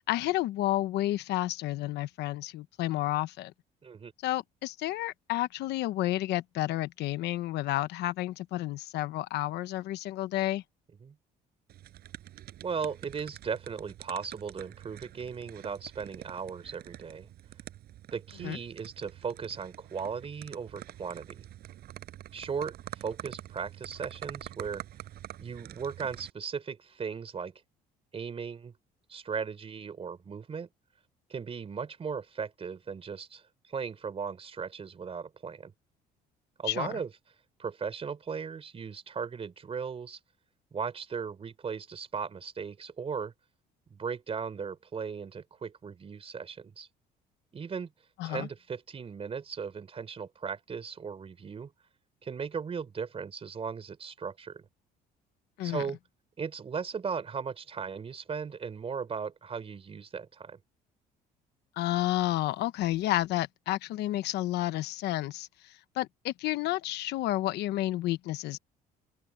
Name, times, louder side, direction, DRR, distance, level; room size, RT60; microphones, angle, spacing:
voice 1, 0.1-3.5 4.2-10.6 18.4-18.6 36.7-36.9 48.2-48.5 55.6-55.8 61.8-65.5 66.0-68.6, left 15 dB, 80° left, 1.1 m, -30 dB
sound 1, 11.7-26.3, right 13 dB, 70° right, 6.4 m, -47 dB
voice 2, 12.6-17.3 18.1-21.5 22.3-24.8 25.4-27.5 28.1-28.7 29.1-30.7 31.3-35.7 36.6-37.1 37.6-40.2 40.7-43.3 43.9-46.9 47.5-47.9 48.2-51.7 52.2-54.7 55.6-56.0 56.4-60.6, right 6 dB, 35° right, 4.3 m, -37 dB
open air
cardioid pair, 110°, 17 cm